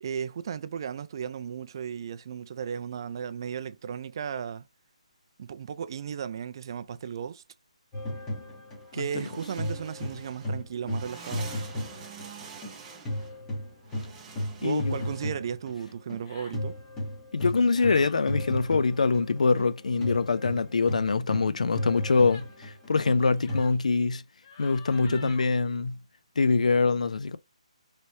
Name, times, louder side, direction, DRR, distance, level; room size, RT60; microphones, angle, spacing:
voice 1, 0.0-4.6 5.4-7.4 8.9-11.5 14.6-16.8 24.9-25.3, right 7 dB, 40° right, 0.3 m, -35 dB
sound 1, 7.9-12.8 13.0-23.6, left 1 dB, 10° left, 1.1 m, -35 dB
sound 2, 8.8-15.3, right 6 dB, 15° right, 0.7 m, -47 dB
sound 3, 10.9-11.6 13.2-13.5 14.8-15.2 16.1-16.6 17.7-18.3 22.2-22.6 23.4-23.8 24.4-25.5, left 5 dB, 35° left, 0.7 m, -50 dB
voice 2, 14.6-15.0 17.3-24.2 24.6-26.0 26.4-27.4, left 4 dB, 75° left, 0.5 m, -24 dB
3.2 x 3.0 x 2.8 m
hypercardioid pair, 160°, 4 cm